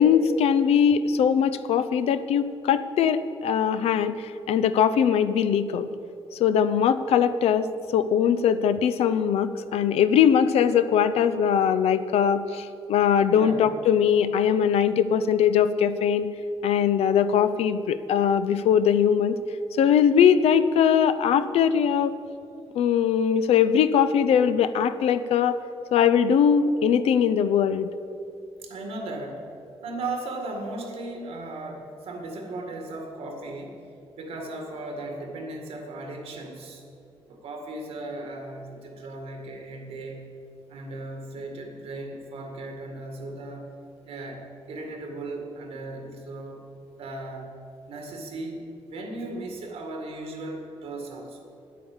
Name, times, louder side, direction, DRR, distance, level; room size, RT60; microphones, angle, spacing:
voice 1, 0.0-4.1 4.5-5.9 6.4-16.3 16.6-19.3 19.8-22.1 22.7-25.6 25.9-27.9, left 8 dB, 90° left, 12 dB, 0.5 m, -21 dB
voice 2, 13.3-13.7 28.6-33.9 34.2-36.8 37.3-40.4 40.7-43.7 44.0-46.7 47.0-47.5 47.9-51.5, right 2 dB, 80° right, 2 dB, 1.9 m, -37 dB
9.7 x 8.4 x 7.1 m, 2.7 s
cardioid pair, 120°, 10 cm